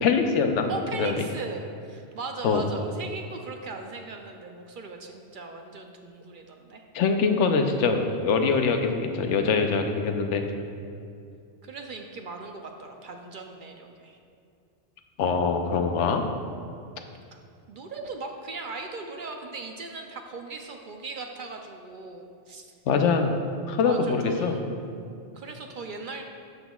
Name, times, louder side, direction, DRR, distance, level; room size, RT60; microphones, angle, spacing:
voice 1, 0.0-0.7 1.0-1.1 2.4-2.6 6.9-10.5 15.2-16.2 22.9-23.4 23.7-24.6, left 5 dB, 85° left, 5 dB, 1.0 m, -23 dB
voice 2, 0.7-6.8 11.6-14.2 17.3-17.4 17.7-22.7 23.8-26.2, right 3 dB, 60° right, 3 dB, 0.6 m, -38 dB
12.5 x 6.1 x 2.3 m, 2.5 s
omnidirectional pair, 1.2 m